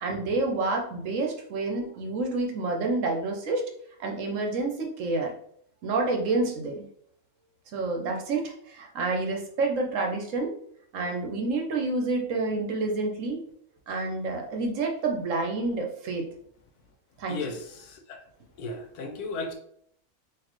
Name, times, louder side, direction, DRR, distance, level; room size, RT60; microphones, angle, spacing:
voice 1, 0.0-3.7 4.0-5.3 5.8-6.8 7.7-10.5 10.9-13.4 13.9-16.2 17.2-17.5, right 3 dB, 65° right, 1 dB, 1.0 m, -28 dB
voice 2, 17.3-18.2 18.6-19.5, left 3 dB, 85° left, 4 dB, 1.2 m, -35 dB
4.0 x 2.7 x 3.0 m, 0.66 s
omnidirectional pair, 1.6 m